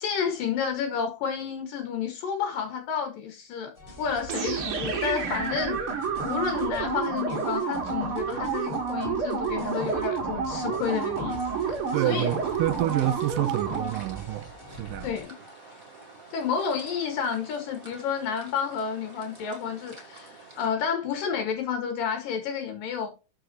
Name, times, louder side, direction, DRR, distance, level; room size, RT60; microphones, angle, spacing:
voice 1, 0.0-3.7 4.0-5.8 6.2-12.3 15.0-15.4 16.3-23.1, left 7 dB, 70° left, 3.3 m, -30 dB
sound 1, 3.8-15.2, equal, 15° left, 3.3 m, -45 dB
sound 2, 4.3-14.1, right 5 dB, 45° right, 2.4 m, -30 dB
sound 3, 11.3-20.7, right 2 dB, 20° right, 6.9 m, -49 dB
voice 2, 11.9-15.1, right 16 dB, 80° right, 2.0 m, -28 dB
13.0 x 6.4 x 2.9 m
omnidirectional pair, 4.2 m